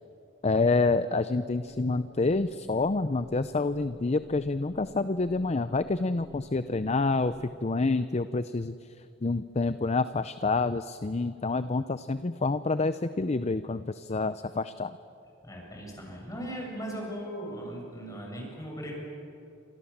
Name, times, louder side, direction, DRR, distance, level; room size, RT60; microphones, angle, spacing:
voice 1, 0.4-7.3 7.6-8.7 9.2-14.9, left 3 dB, 35° left, 12 dB, 0.6 m, -27 dB
sound 1, 1.5-7.5, equal, ahead, 6.9 m, -50 dB
voice 2, 15.4-18.9, right 1 dB, 20° left, -1 dB, 7.8 m, -38 dB
29.0 x 26.5 x 7.3 m, 2.7 s
head